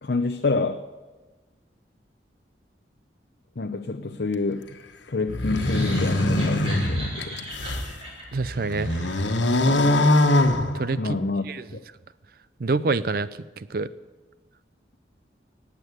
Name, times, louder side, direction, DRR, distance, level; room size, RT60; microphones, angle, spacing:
voice 1, 0.0-0.8 3.6-4.7 5.1-7.5 11.0-11.8, left 3 dB, 60° left, 7 dB, 0.6 m, -27 dB
sound 1, 5.3-7.9 8.4-11.2, left 1 dB, 90° left, 1.4 m, -22 dB
sound 2, 5.4-9.7, equal, 30° right, 5.0 m, -39 dB
voice 2, 8.3-9.3 10.7-11.2 11.5-11.6 12.6-13.3 13.6-13.9, right 3 dB, 55° right, 16 dB, 0.5 m, -27 dB
18.5 x 8.3 x 8.2 m, 1.2 s
head